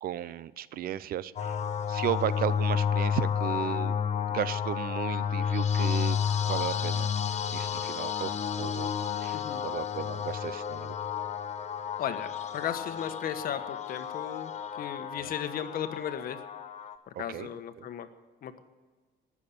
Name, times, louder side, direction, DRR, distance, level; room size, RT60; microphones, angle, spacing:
voice 1, 0.0-4.0 4.3-6.2 6.5-7.1 7.5-8.3 8.6-8.9 9.2-10.9 17.1-17.5, right 11 dB, 60° right, 18 dB, 0.6 m, -35 dB
sound 1, 1.4-17.0, left 8 dB, 40° left, 1.1 m, -31 dB
voice 2, 12.0-14.5 14.8-16.4 17.2-18.1 18.4-18.6, left 9 dB, 60° left, 9 dB, 1.3 m, -35 dB
18.5 x 7.3 x 8.6 m, 1.4 s
cardioid pair, 110°, 17 cm